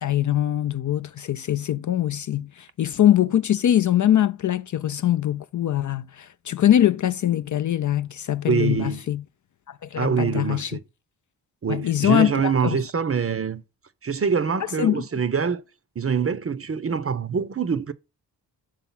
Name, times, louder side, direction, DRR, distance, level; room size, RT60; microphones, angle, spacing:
voice 1, 0.0-9.2 9.7-10.8 11.7-12.8 14.8-15.0, left 11 dB, 45° left, 0.4 m, -22 dB
voice 2, 8.5-9.0 10.0-10.8 11.6-13.6 14.0-15.6 16.0-17.9, right 6 dB, 30° right, 0.6 m, -24 dB
5.6 x 3.6 x 5.6 m
supercardioid pair, 40°, 44 cm